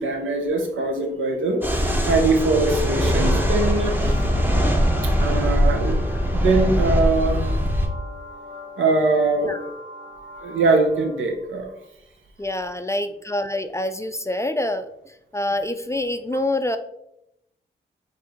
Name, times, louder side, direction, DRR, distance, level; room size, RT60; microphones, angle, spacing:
voice 1, 0.0-4.6 5.2-7.4 8.8-9.7 10.4-11.7, right 3 dB, 75° right, 2 dB, 0.8 m, -22 dB
sound 1, 1.6-7.9, equal, 10° right, 0.8 m, -21 dB
sound 2, 2.4-11.3, left 2 dB, 40° right, 1.3 m, -39 dB
voice 2, 12.4-16.8, left 1 dB, 15° left, 9 dB, 0.4 m, -26 dB
4.4 x 2.5 x 3.5 m, 0.81 s
supercardioid pair, 40°, 20 cm